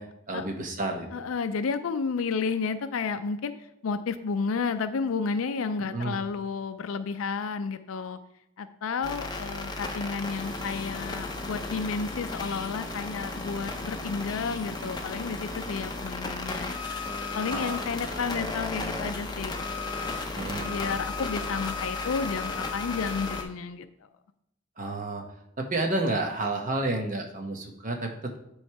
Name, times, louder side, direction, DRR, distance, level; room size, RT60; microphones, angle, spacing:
voice 1, 0.0-1.3 5.9-6.2 17.5-17.8 18.1-18.3 20.4-20.8 24.8-25.2 25.6-28.4, right 2 dB, 40° right, 3 dB, 0.9 m, -31 dB
voice 2, 1.1-3.5 3.8-8.2 8.6-16.8 17.3-19.6 20.6-23.9, left 5 dB, 80° left, 10 dB, 0.4 m, -31 dB
sound 1, 9.0-23.4, left 3 dB, 20° left, 0.6 m, -34 dB
9.1 x 3.2 x 4.6 m, 0.77 s
head